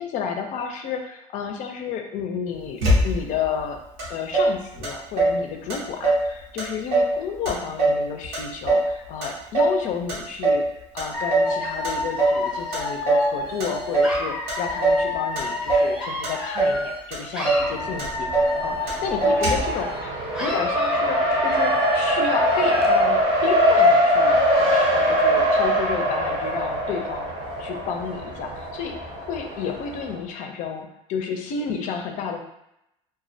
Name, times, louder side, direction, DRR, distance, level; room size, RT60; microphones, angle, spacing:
voice 1, 0.0-3.8 4.1-10.6 10.9-20.1 20.4-27.3 27.6-32.4, left 6 dB, 55° left, 4 dB, 0.4 m, -31 dB
Motor vehicle (road), 2.8-3.5 4.0-4.1 4.3-5.4 5.7-6.3 6.6-7.2 7.5-8.9 9.2-9.8 10.1-10.7 11.0-11.6 11.8-12.4 12.7-13.3 13.6-14.2 14.5-15.1 15.4-15.9 16.2-16.8 17.1-17.2 17.4-17.7 18.0-18.6 18.9-19.0 19.2-19.8, right 2 dB, 80° right, 0.8 m, -21 dB
Dog / Alarm, 11.1-17.0 17.3-20.0 20.3-23.1, left 2 dB, 5° right, 0.7 m, -30 dB
Race car auto racing, 17.6-30.2, equal, 40° right, 0.7 m, -22 dB
2.2 x 2.1 x 2.6 m, 0.82 s
supercardioid pair, 95°, 15 cm